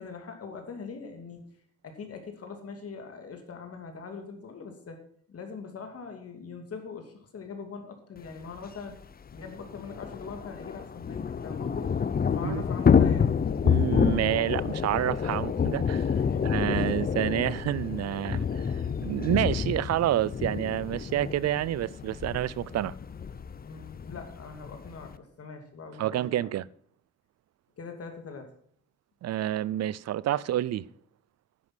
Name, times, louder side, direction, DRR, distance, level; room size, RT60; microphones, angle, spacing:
voice 1, 0.0-1.4 1.8-5.0 5.3-9.0 9.3-11.9 12.3-13.3 16.1-16.6 23.6-26.5 27.8-28.5, left 5 dB, 50° left, 2.6 m, -42 dB
Thunder / Rain, 8.6-8.7 8.9-9.0 9.3-25.2, left 7 dB, 30° left, 0.7 m, -28 dB
voice 2, 13.6-16.1 16.4-22.9 26.0-26.6 29.2-30.8, right 13 dB, 60° right, 0.5 m, -28 dB
10.5 x 8.0 x 6.0 m
cardioid pair, 90°, 30 cm